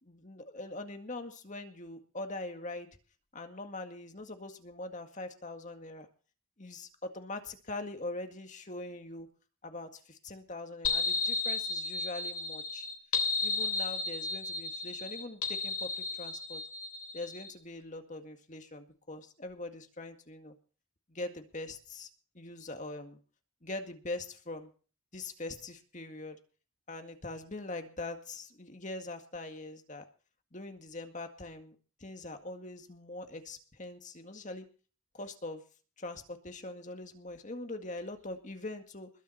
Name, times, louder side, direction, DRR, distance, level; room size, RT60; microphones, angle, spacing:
voice 1, 0.0-2.9 3.3-6.1 6.6-9.3 9.6-12.9 13.4-16.6 17.1-20.6 21.1-22.1 22.3-23.2 23.6-24.7 25.1-26.4 26.9-30.1 30.5-34.7 35.1-35.6 36.0-39.1, left 2 dB, 35° left, 6 dB, 1.9 m, -42 dB
sound 1, 10.8-17.5, left 4 dB, 80° left, 3.0 m, -33 dB
21.0 x 7.1 x 5.7 m, 0.37 s
head